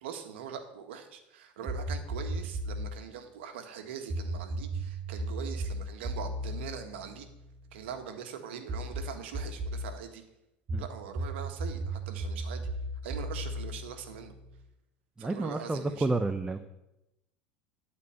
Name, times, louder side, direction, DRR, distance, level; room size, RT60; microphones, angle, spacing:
voice 1, 0.0-7.3 7.7-10.2 10.8-12.7 13.0-14.3 15.2-16.1, right 7 dB, 75° right, 6 dB, 1.5 m, -42 dB
sound 1, 1.7-3.0 4.1-7.8 8.7-9.9 10.7-14.6, right 1 dB, 30° right, 3.0 m, -36 dB
voice 2, 15.2-16.7, right 2 dB, 15° right, 9 dB, 0.7 m, -30 dB
12.5 x 4.5 x 8.6 m, 0.92 s
hypercardioid pair, 80°, 6 cm